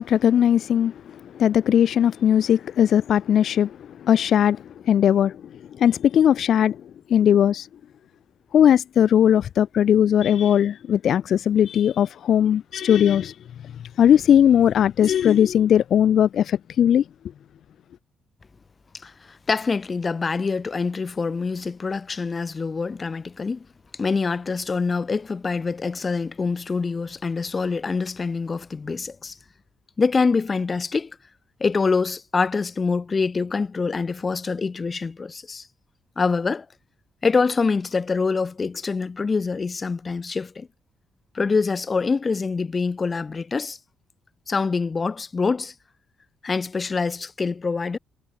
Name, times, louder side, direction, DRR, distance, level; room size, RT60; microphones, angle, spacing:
voice 1, 0.0-5.4 5.7-6.8 7.1-7.7 8.5-13.3 14.0-17.0, left 9 dB, 65° left, 0.4 m, -19 dB
voice 2, 19.0-23.7 24.0-29.4 30.0-31.2 31.6-35.7 36.2-36.7 37.2-40.7 41.3-43.8 44.5-45.7 46.4-48.0, left 4 dB, 30° left, 0.7 m, -25 dB
cardioid pair, 90°, 0 cm